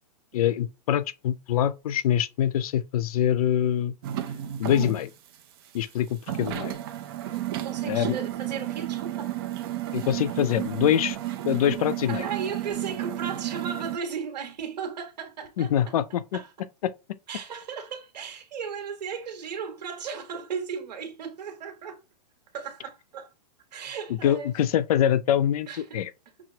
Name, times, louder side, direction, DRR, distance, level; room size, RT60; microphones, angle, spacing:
voice 1, 0.3-3.9 4.6-5.1 5.7-6.8 7.9-8.2 9.9-11.2 11.4-12.2 15.6-16.2 24.2-25.7 25.9-26.1, left 10 dB, 60° left, 0.5 m, -24 dB
sound 1, 4.0-5.0 5.3-5.4 5.8-5.9 6.3-14.0, right 14 dB, 35° right, 0.4 m, -32 dB
voice 2, 7.3-9.4 12.1-16.0 16.3-16.5 17.3-22.0 22.5-23.3 23.7-24.5 25.7-26.1, right 6 dB, 75° right, 1.3 m, -36 dB
6.0 x 2.0 x 2.7 m
hypercardioid pair, 160°, 21 cm